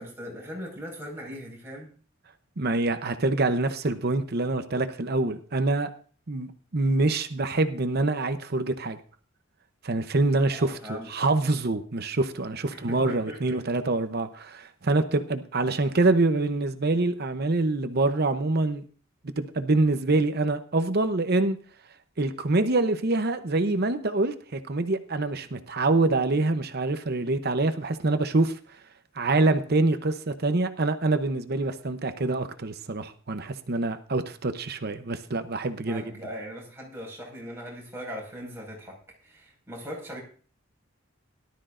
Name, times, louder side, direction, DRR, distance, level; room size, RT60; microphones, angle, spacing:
voice 1, 0.0-1.9 10.5-11.1 12.7-13.6 35.9-40.2, equal, 10° right, -2 dB, 5.2 m, -40 dB
voice 2, 2.6-5.9 6.3-9.0 9.8-18.8 19.4-21.6 22.2-28.5 29.2-36.0, right 2 dB, 50° right, 9 dB, 0.8 m, -25 dB
18.0 x 12.5 x 2.6 m, 0.41 s
head